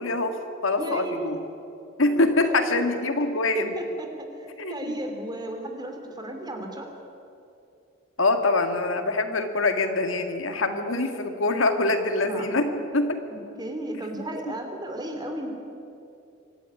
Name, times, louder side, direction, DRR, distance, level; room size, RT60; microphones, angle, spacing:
voice 1, 0.0-1.4 2.0-3.7 4.6-4.9 8.2-13.2 14.5-14.6, left 2 dB, 80° left, 7 dB, 1.9 m, -24 dB
voice 2, 0.8-1.4 2.1-2.8 3.5-4.1 4.3-6.9 12.2-12.8 13.3-15.5, right 1 dB, 20° right, 4 dB, 2.8 m, -34 dB
25.0 x 13.0 x 9.8 m, 2.7 s
head